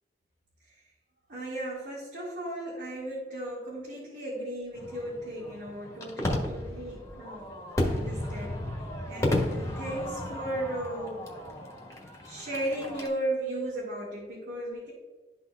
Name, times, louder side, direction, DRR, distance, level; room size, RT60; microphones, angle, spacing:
voice 1, 1.3-7.5 7.9-8.6 9.1-11.2 12.2-14.9, right 1 dB, 80° right, -6 dB, 1.8 m, -35 dB
Fireworks, 4.7-13.1, left 1 dB, 15° left, 1.2 m, -33 dB
12.5 x 4.1 x 2.3 m, 1.3 s
head